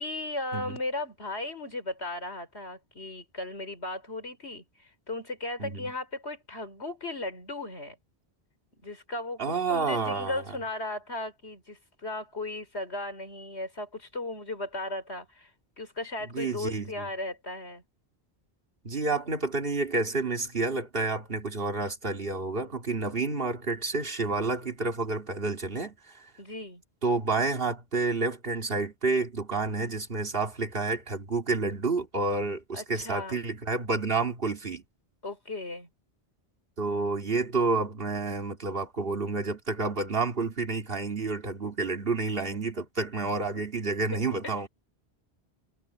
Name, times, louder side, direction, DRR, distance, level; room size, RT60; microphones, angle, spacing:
voice 1, 0.0-8.0 8.7-15.5 15.8-17.8 26.4-26.8 32.7-33.4 35.2-35.9 42.5-42.6 44.1-44.7, left 2 dB, 85° left, 4.7 m, -36 dB
voice 2, 5.6-5.9 9.4-10.4 16.3-17.0 18.8-26.3 27.0-34.8 36.8-44.7, right 3 dB, 60° right, 2.5 m, -29 dB
omnidirectional pair, 1.1 m